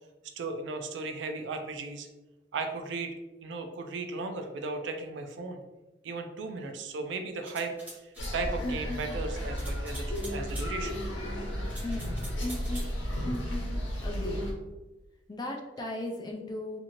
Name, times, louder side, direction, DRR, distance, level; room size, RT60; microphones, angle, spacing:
voice 1, 0.4-2.1 2.5-5.6 6.0-7.7 8.0-11.0, right 3 dB, 70° right, 5 dB, 0.3 m, -36 dB
sound 1, 7.5-8.3 9.6-10.7 11.7-12.9, right 1 dB, 10° right, 0.8 m, -46 dB
sound 2, 8.2-14.5, equal, 75° left, 0.8 m, -33 dB
voice 2, 14.0-14.5 15.3-16.8, left 2 dB, 20° left, 0 dB, 0.3 m, -36 dB
2.6 x 2.6 x 2.9 m, 1.1 s
head